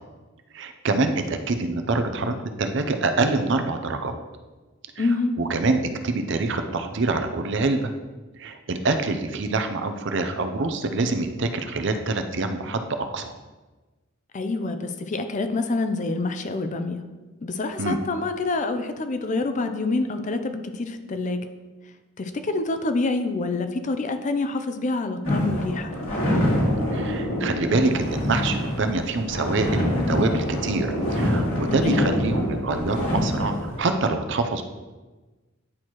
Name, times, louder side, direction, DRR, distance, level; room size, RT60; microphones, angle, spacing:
voice 1, 0.5-4.2 5.0-5.1 5.4-7.9 8.3-13.3 17.8-18.0 26.9-34.6, right 3 dB, 60° right, 7 dB, 0.6 m, -25 dB
voice 2, 5.0-5.3 14.3-17.0 17.4-21.4 22.2-25.9 31.7-32.0, left 3 dB, 35° left, 8 dB, 0.5 m, -26 dB
sound 1, 25.2-33.8, left 1 dB, 70° left, 2.3 m, -25 dB
9.7 x 4.5 x 3.0 m, 1.2 s
head